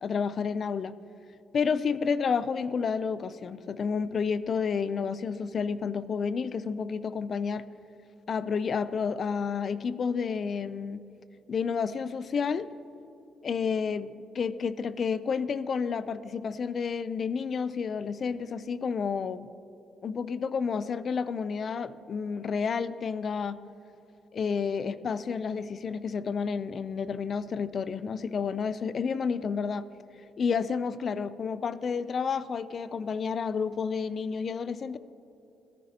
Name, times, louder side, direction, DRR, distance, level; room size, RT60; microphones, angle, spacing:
voice 1, 0.0-0.9 1.5-7.6 8.3-11.0 11.5-12.7 13.4-19.5 20.0-23.6 24.3-29.9 30.4-35.0, left 6 dB, 50° left, 16 dB, 0.4 m, -30 dB
14.5 x 13.5 x 2.8 m, 2.9 s
cardioid pair, 90°, 0 cm